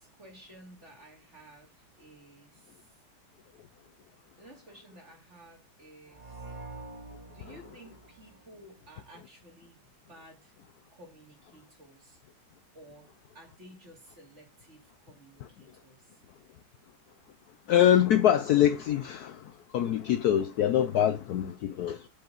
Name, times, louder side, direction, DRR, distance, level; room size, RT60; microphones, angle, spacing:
voice 1, 0.0-2.9 4.4-6.6 7.3-9.8 10.1-10.5 10.9-12.2 12.7-13.1 13.3-16.2, right 1 dB, 35° right, 3.0 m, -54 dB
sound 1, 6.1-8.9, right 3 dB, 15° right, 4.2 m, -46 dB
voice 2, 17.7-22.1, left 10 dB, 85° left, 0.8 m, -24 dB
7.9 x 5.3 x 7.0 m
omnidirectional pair, 2.3 m